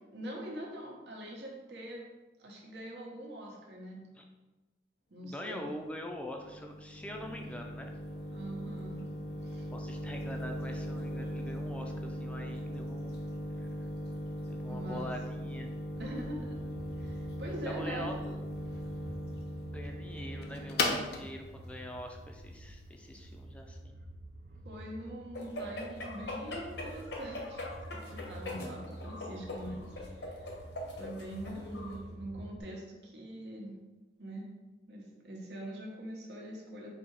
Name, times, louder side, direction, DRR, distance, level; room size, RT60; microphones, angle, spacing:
voice 1, 0.1-2.0 2.4-4.0 5.1-5.7 8.3-9.1 9.4-9.7 14.7-15.1 16.0-18.2 24.6-27.6 27.9-29.8 30.2-30.6 30.9-33.7 34.2-34.5 34.9-36.9, right 1 dB, 75° right, -2 dB, 1.0 m, -43 dB
voice 2, 5.2-7.9 9.7-13.1 13.6-13.7 14.4-15.7 17.6-18.5 19.7-24.0, left 1 dB, 5° left, 2 dB, 0.4 m, -44 dB
sound 1, 5.7-23.3, left 1 dB, 60° left, 0.6 m, -39 dB
sound 2, 15.9-32.6, right 1 dB, 55° right, 0.4 m, -48 dB
sound 3, 25.3-32.0, left 1 dB, 80° left, 1.0 m, -42 dB
4.1 x 2.8 x 4.6 m, 1.2 s
head